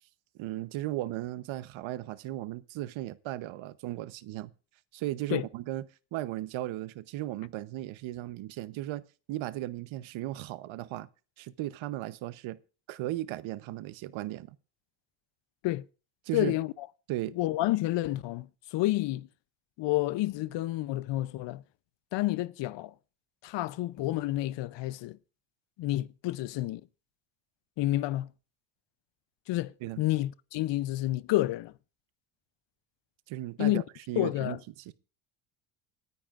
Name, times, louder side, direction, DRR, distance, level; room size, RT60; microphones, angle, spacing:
voice 1, 0.4-4.5 4.9-5.8 6.1-11.1 11.4-12.6 12.9-14.6 16.2-16.6 17.1-17.3 29.8-30.0 33.3-34.9, right 15 dB, 70° right, 0.9 m, -36 dB
voice 2, 16.3-16.9 17.3-19.3 19.8-21.6 22.1-22.9 23.4-25.2 25.8-26.8 27.8-28.3 29.5-31.7 33.6-33.8 34.2-34.6, left 16 dB, 60° left, 0.6 m, -29 dB
27.5 x 10.0 x 2.5 m
cardioid pair, 120°, 49 cm